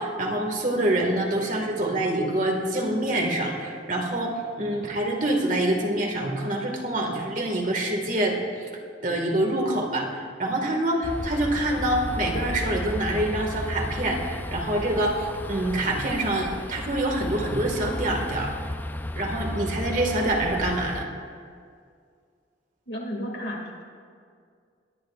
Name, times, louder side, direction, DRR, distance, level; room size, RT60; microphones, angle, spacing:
voice 1, 0.0-8.7 9.0-18.5 19.1-21.1, right 1 dB, 45° right, 1 dB, 2.0 m, -26 dB
sound 1, 11.0-21.0, left 1 dB, 10° left, 0.3 m, -34 dB
voice 2, 22.9-23.8, equal, 70° left, 0 dB, 2.5 m, -33 dB
22.5 x 18.5 x 2.6 m, 2.2 s
head